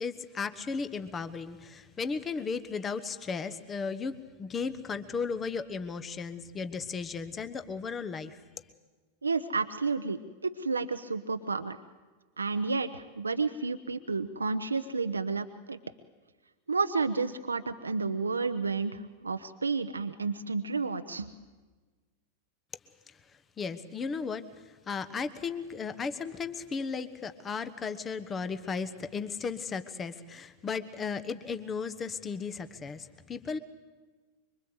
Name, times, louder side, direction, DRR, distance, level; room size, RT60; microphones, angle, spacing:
voice 1, 0.0-8.4 23.1-23.2 23.6-33.6, left 5 dB, 20° left, 12 dB, 1.2 m, -35 dB
voice 2, 9.2-11.8 12.4-15.8 16.7-21.3, right 4 dB, 75° right, 9 dB, 0.8 m, -31 dB
25.0 x 24.0 x 8.0 m, 1.3 s
figure-of-eight pair, 90°, 0 cm